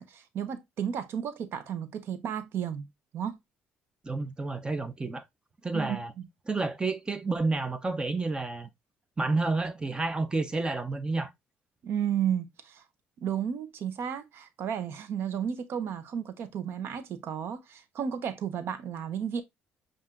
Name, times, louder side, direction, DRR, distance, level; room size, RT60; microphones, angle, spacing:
voice 1, 0.0-2.9 3.1-3.4 5.7-6.3 11.8-12.8 13.2-19.4, right 8 dB, 65° right, 0.8 m, -33 dB
voice 2, 4.0-5.2 5.6-6.1 6.5-8.7 9.2-11.3, right 3 dB, 20° right, 0.7 m, -30 dB
7.4 x 2.5 x 2.4 m
supercardioid pair, 80°, 4 cm